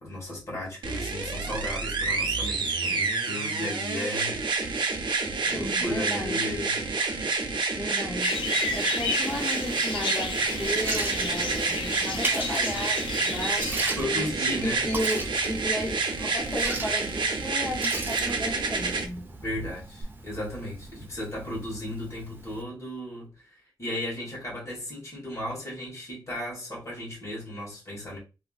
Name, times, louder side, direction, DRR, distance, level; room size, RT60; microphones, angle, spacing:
voice 1, 0.0-4.4 5.4-6.8 14.0-14.8 19.4-23.5 23.8-28.2, left 1 dB, 35° left, 1.6 m, -35 dB
sound 1, 0.8-19.0 20.0-20.1, right 4 dB, 75° right, 0.6 m, -28 dB
voice 2, 5.4-6.4 7.7-8.4 8.7-13.7 14.1-19.3, left 1 dB, 20° left, 0.7 m, -34 dB
sound 2, 8.2-13.7, left 3 dB, 85° left, 0.6 m, -32 dB
Liquid, 10.3-22.6, right 2 dB, 25° right, 0.5 m, -38 dB
3.4 x 2.5 x 2.4 m
wide cardioid pair, 130°, 8 cm